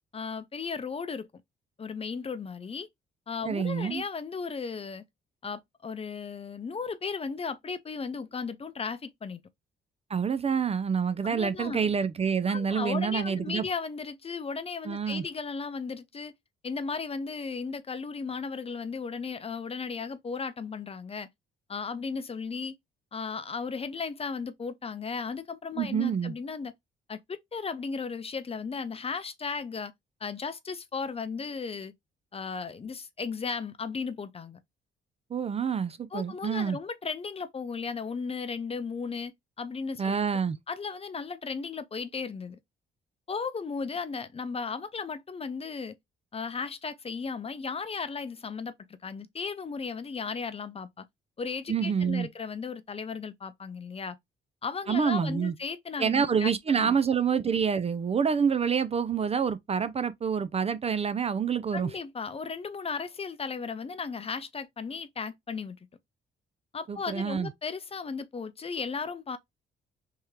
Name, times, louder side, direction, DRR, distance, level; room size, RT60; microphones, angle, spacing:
voice 1, 0.1-1.3 1.8-2.9 3.3-5.0 5.4-9.4 11.2-11.8 12.5-16.3 16.6-21.3 21.7-22.7 23.1-26.7 27.1-29.9 30.2-31.9 32.3-34.6 36.1-39.3 39.6-40.2 40.7-42.6 43.3-46.0 46.3-48.7 49.0-51.0 51.4-54.2 54.6-56.5 56.8-56.9 61.7-65.8 66.7-69.4, left 5 dB, 30° left, 0.6 m, -35 dB
voice 2, 3.5-4.0 10.1-13.6 14.9-15.2 25.8-26.3 35.3-36.8 40.0-40.6 51.7-52.3 54.9-55.5 56.0-61.9 66.9-67.5, right 6 dB, 30° right, 0.4 m, -27 dB
3.5 x 2.8 x 3.2 m
cardioid pair, 90°, 20 cm